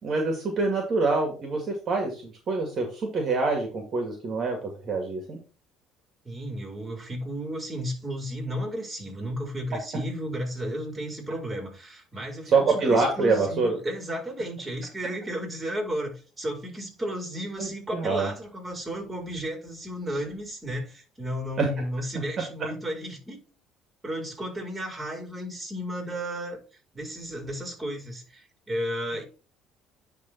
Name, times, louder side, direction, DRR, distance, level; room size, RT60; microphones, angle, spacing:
voice 1, 0.0-5.4 12.5-13.8 17.6-18.3 21.6-21.7, right 3 dB, 50° right, 2.1 m, -25 dB
voice 2, 6.2-23.4 24.0-26.6 26.9-29.2, equal, 20° right, 4.6 m, -33 dB
10.0 x 3.5 x 4.5 m
supercardioid pair, 75°, 0 cm